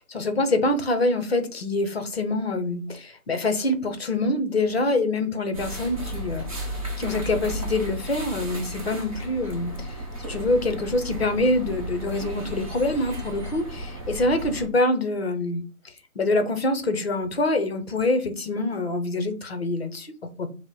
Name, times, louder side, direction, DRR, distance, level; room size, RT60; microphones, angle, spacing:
voice 1, 0.0-6.5 7.0-10.0 10.3-15.6 16.2-20.5, left 2 dB, 45° left, 0.7 m, -25 dB
sound 1, 5.5-14.7, right 1 dB, 25° right, 0.8 m, -34 dB
4.9 x 2.1 x 3.9 m
figure-of-eight pair, 155°, 44 cm